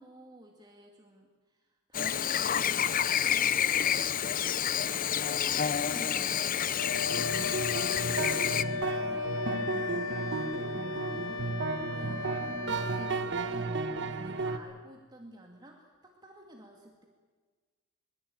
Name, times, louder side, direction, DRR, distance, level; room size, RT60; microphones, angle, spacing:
voice 1, 0.0-6.2 6.7-9.5 10.3-17.1, right 1 dB, 20° right, 1 dB, 2.2 m, -52 dB
Chirp tweet / Buzz, 1.9-8.6, left 9 dB, 45° left, 0.7 m, -29 dB
voice 2, 5.8-6.7 9.6-10.1, left 1 dB, 5° left, 1 dB, 4.2 m, -49 dB
Wind instrument woodwind instrument, 6.8-13.3, left 5 dB, 85° left, 1.3 m, -37 dB
sound 1, 7.1-14.6, right 3 dB, 65° right, 1.4 m, -33 dB
22.5 x 22.0 x 9.0 m, 1.4 s
head